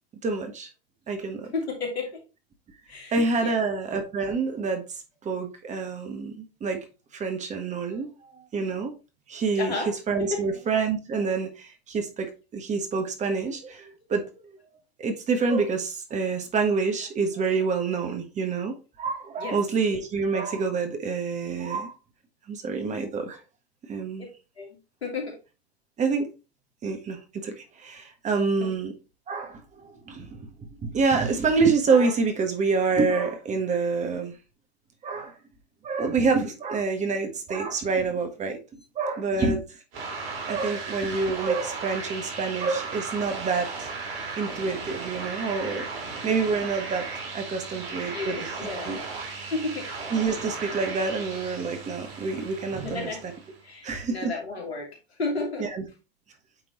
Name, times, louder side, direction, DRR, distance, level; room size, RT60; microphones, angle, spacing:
voice 1, 0.2-0.7 1.1-1.5 3.1-4.8 5.2-6.8 7.1-8.9 9.3-9.7 10.1-14.2 15.0-21.9 22.5-23.4 23.9-24.3 26.0-26.3 26.8-28.9 29.3-30.5 30.8-34.3 35.0-35.3 35.8-38.6 38.9-39.6 40.5-43.9 44.4-45.9 46.2-47.1 47.3-48.4 48.8-49.0 50.1-53.1 53.8-54.3 55.6-55.8, right 4 dB, 25° right, 1.3 m, -27 dB
voice 2, 1.5-2.2 2.9-3.7 9.5-9.9 10.2-10.4 19.4-19.6 24.2-24.3 24.6-25.4 28.6-28.7 39.3-39.5 48.1-49.0 49.5-49.9 52.8-53.2 53.6-55.7, left 3 dB, 80° left, 2.9 m, -33 dB
sound 1, 39.9-53.6, right 4 dB, 50° right, 3.2 m, -36 dB
8.8 x 3.7 x 3.0 m
hypercardioid pair, 105°, 31 cm